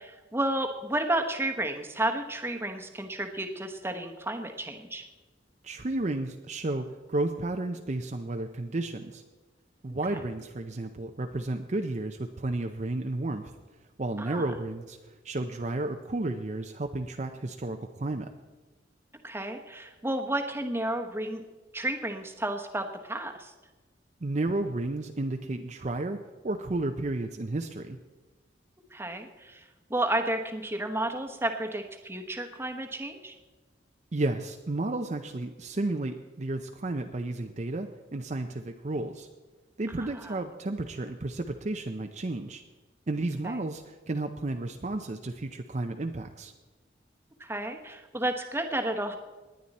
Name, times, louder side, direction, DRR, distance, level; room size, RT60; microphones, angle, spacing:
voice 1, 0.0-5.0 14.2-14.4 19.2-21.4 21.7-23.5 28.9-29.6 29.9-33.3 40.0-40.3 43.4-43.6 47.4-49.2, right 1 dB, 15° right, 5 dB, 1.1 m, -32 dB
voice 2, 5.6-9.2 9.8-13.5 14.0-18.3 24.2-28.0 34.1-39.3 39.8-42.6 43.1-46.5, right 2 dB, 40° right, 5 dB, 0.6 m, -32 dB
19.0 x 10.0 x 4.2 m, 1.3 s
head